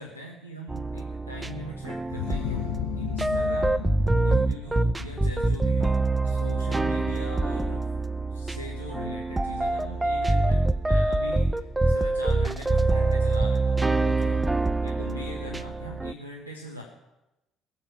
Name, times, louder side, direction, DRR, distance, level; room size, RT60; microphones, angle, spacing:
voice 1, 0.0-2.7 3.0-3.9 4.2-7.9 8.3-16.8, equal, 85° right, 0 dB, 1.4 m, -41 dB
sound 1, 0.7-16.1, right 2 dB, 15° right, 0.6 m, -25 dB
sound 2, 2.1-7.6, left 14 dB, 65° left, 0.7 m, -36 dB
21.5 x 7.4 x 6.1 m, 0.94 s
figure-of-eight pair, 50°, 0 cm